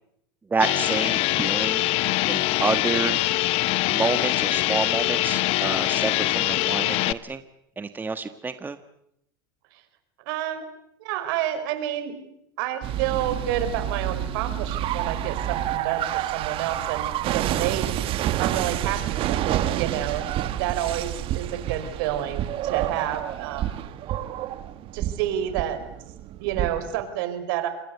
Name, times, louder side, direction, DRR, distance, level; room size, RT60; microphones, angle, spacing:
voice 1, 0.5-1.8 2.3-3.2 3.9-7.4 7.8-8.8, right 4 dB, 15° right, 10 dB, 1.4 m, -28 dB
sound 1, 0.6-7.1, left 18 dB, 55° left, 1.1 m, -23 dB
voice 2, 10.3-10.7 11.0-12.1 12.6-17.9 18.4-20.2 20.6-23.6 24.9-25.8 26.4-27.7, right 11 dB, 65° right, 10 dB, 5.0 m, -29 dB
sound 2, 12.8-27.0, right 12 dB, 45° right, 1.8 m, -29 dB
27.5 x 21.5 x 8.2 m, 0.76 s
hypercardioid pair, 105°, 12 cm